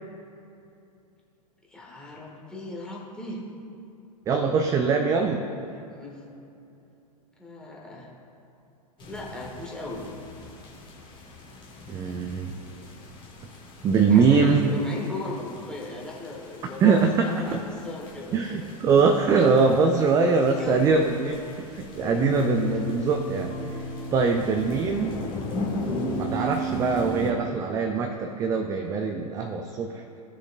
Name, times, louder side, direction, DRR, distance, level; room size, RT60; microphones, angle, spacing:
voice 1, 1.7-3.4 5.9-6.2 7.4-8.1 9.1-10.0 14.1-18.4 20.0-21.1 22.0-22.8, left 2 dB, 5° left, -3 dB, 1.4 m, -38 dB
voice 2, 4.3-5.4 11.9-12.5 13.8-14.7 16.8-17.3 17.5-17.6 18.3-23.7 24.1-25.2 26.2-30.0, right 5 dB, 15° right, 4 dB, 0.4 m, -22 dB
sound 1, 9.0-27.3, left 2 dB, 25° left, 1.6 m, -40 dB
sound 2, 20.6-27.4, right 1 dB, 50° left, 2.1 m, -34 dB
15.5 x 6.5 x 2.3 m, 2.7 s
figure-of-eight pair, 100°, 20 cm